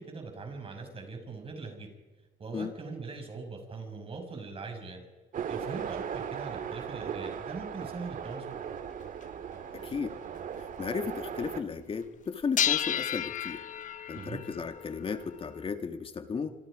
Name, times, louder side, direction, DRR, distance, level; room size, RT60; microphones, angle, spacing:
voice 1, 0.0-1.9 2.4-5.0 5.5-8.6 14.1-14.4, right 4 dB, 35° right, 4 dB, 6.1 m, -41 dB
sound 1, 5.3-11.6, right 8 dB, 50° right, 1.8 m, -38 dB
sound 2, 8.2-8.3 9.2-9.3 9.8-9.9 10.3-10.6 12.6-15.7, left 9 dB, 50° left, 1.0 m, -32 dB
voice 2, 9.8-10.1 10.8-13.6 14.1-16.5, left 5 dB, 35° left, 8 dB, 2.0 m, -34 dB
27.0 x 26.0 x 5.1 m, 1.3 s
cardioid pair, 110°, 17 cm